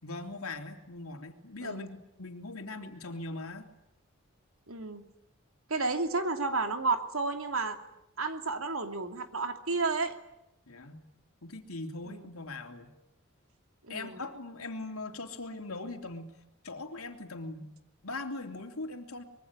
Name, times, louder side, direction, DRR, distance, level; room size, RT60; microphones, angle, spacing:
voice 1, 0.0-3.6 10.7-11.1 11.4-12.9 13.9-16.4 16.6-17.7 18.0-19.2, left 2 dB, 90° left, 5 dB, 3.2 m, -40 dB
voice 2, 4.7-5.0 5.7-7.8 8.2-10.2 12.0-12.3 13.9-14.2, right 3 dB, 80° right, 6 dB, 2.8 m, -31 dB
24.5 x 23.0 x 9.8 m, 0.86 s
head